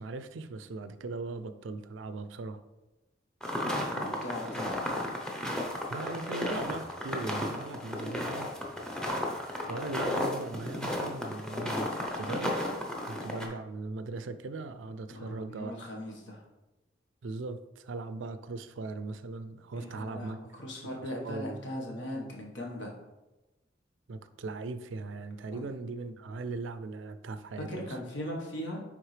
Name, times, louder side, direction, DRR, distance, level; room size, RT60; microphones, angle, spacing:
voice 1, 0.0-2.6 5.9-8.5 9.6-12.6 13.1-15.7 16.1-16.2 17.2-20.4 20.9-21.6 24.1-28.0, right 3 dB, 75° right, 12 dB, 0.4 m, -39 dB
sound 1, 3.4-13.5, left 1 dB, 5° left, 0.8 m, -34 dB
voice 2, 4.0-4.7 15.1-16.4 19.8-22.9 25.5-25.6 27.7-28.8, left 1 dB, 70° left, -1 dB, 1.4 m, -39 dB
9.3 x 3.5 x 3.3 m, 1.0 s
head